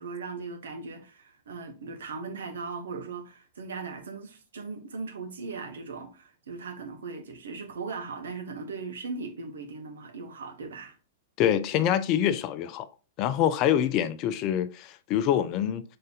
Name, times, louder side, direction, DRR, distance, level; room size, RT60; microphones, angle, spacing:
voice 1, 0.0-11.0, right 4 dB, 70° right, 0.9 m, -38 dB
voice 2, 11.4-12.9 13.2-15.8, left 10 dB, 40° left, 0.4 m, -25 dB
5.3 x 3.8 x 2.3 m
figure-of-eight pair, 105°, 0 cm